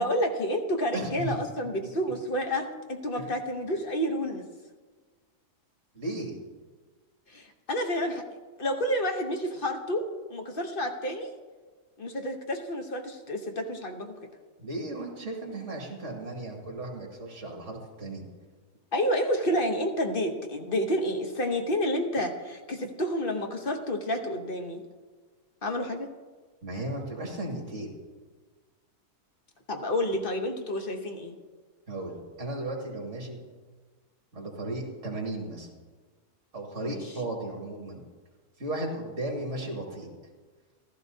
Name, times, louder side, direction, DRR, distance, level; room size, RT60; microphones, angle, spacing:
voice 1, 0.0-4.5 7.3-8.2 8.6-11.3 12.0-14.1 18.9-24.8 25.6-26.1 29.7-31.3 36.8-37.0, equal, 40° left, 4 dB, 0.9 m, -29 dB
voice 2, 0.9-1.3 3.1-3.3 5.9-6.4 14.6-18.2 26.6-27.9 31.9-33.4 34.3-35.7 36.5-38.0 38.6-40.1, right 1 dB, 50° right, 0 dB, 2.5 m, -35 dB
15.0 x 13.0 x 2.7 m, 1.4 s
omnidirectional pair, 1.6 m